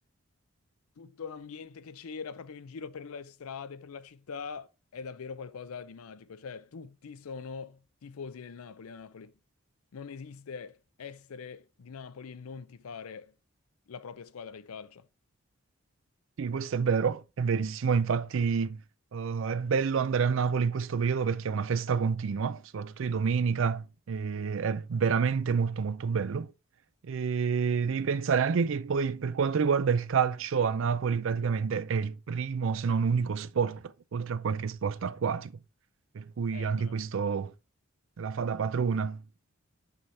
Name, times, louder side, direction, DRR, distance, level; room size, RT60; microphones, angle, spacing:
voice 1, 1.0-9.3 9.9-13.4 13.9-15.1 36.5-37.0, left 5 dB, 85° left, 0.5 m, -43 dB
voice 2, 16.4-18.8 19.1-26.5 27.0-33.8 34.1-35.5 36.1-37.5 38.2-39.2, right 6 dB, 65° right, 0.4 m, -28 dB
5.7 x 5.6 x 3.2 m
head